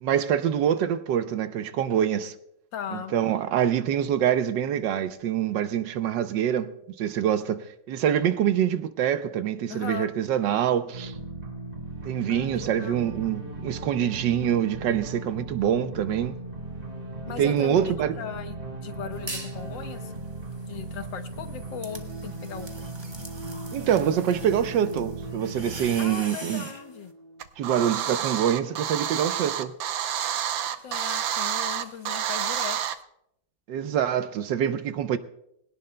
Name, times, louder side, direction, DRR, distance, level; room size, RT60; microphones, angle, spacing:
voice 1, 0.0-2.3 2.9-6.7 7.0-11.1 12.0-16.4 17.4-18.1 23.7-26.7 27.6-29.7 33.7-35.2, right 9 dB, 75° right, 1.3 m, -25 dB
voice 2, 2.7-3.1 9.7-10.1 12.3-13.1 17.3-20.1 20.7-22.9 26.0-27.1 30.8-32.8, left 8 dB, 75° left, 1.7 m, -38 dB
sound 1, 10.9-27.4, right 2 dB, 30° right, 3.2 m, -37 dB
sound 2, 19.1-19.6 20.0-26.8, right 2 dB, 15° right, 1.0 m, -43 dB
sound 3, 27.4-33.0, right 9 dB, 90° right, 1.5 m, -29 dB
21.0 x 17.5 x 2.2 m
omnidirectional pair, 2.1 m